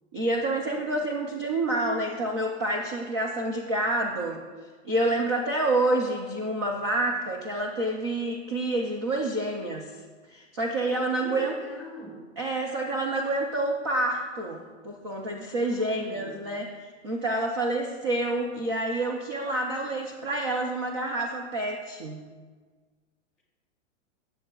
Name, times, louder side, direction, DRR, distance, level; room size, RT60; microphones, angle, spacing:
voice 1, 0.1-4.4 4.8-10.0 10.3-11.5 12.4-22.2, right 2 dB, 25° right, 1 dB, 0.4 m, -28 dB
voice 2, 10.8-12.3 15.6-16.5, equal, ahead, -4 dB, 2.7 m, -43 dB
17.5 x 7.5 x 2.3 m, 1.5 s
hypercardioid pair, 165°, 38 cm